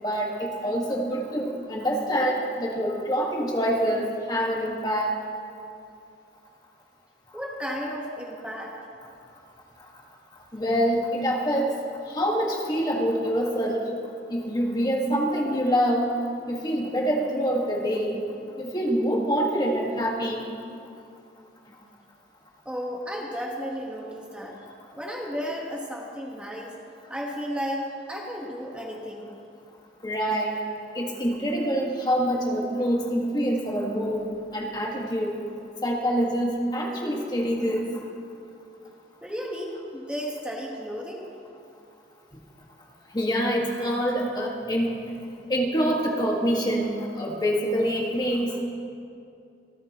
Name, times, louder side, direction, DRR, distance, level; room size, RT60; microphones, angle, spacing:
voice 1, 0.0-5.1 10.5-11.7 12.1-13.9 14.3-16.1 16.5-18.2 18.6-20.5 30.0-30.6 30.9-34.3 34.5-35.3 35.8-37.9 43.1-44.9 45.5-48.5, equal, 25° left, -1 dB, 1.6 m, -25 dB
voice 2, 7.3-8.8 22.6-24.5 25.0-26.7 27.1-27.8 28.1-29.3 39.2-41.3, equal, 5° right, -3 dB, 1.3 m, -33 dB
26.5 x 13.5 x 3.0 m, 2.5 s
head